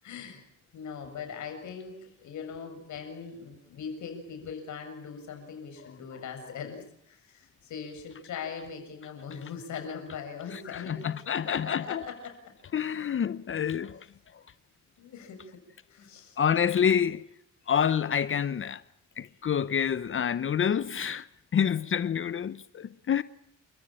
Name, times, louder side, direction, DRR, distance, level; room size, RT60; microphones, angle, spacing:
voice 1, 0.0-0.4 0.7-12.5 15.0-15.6 15.9-16.4, left 6 dB, 70° left, 7.1 m, -40 dB
voice 2, 10.5-12.0 12.7-14.1 14.3-14.4 16.4-17.2 17.7-18.8 19.2-21.3 21.5-23.2, left 8 dB, 45° left, 0.9 m, -28 dB
29.5 x 14.5 x 9.0 m
cardioid pair, 90°, 30 cm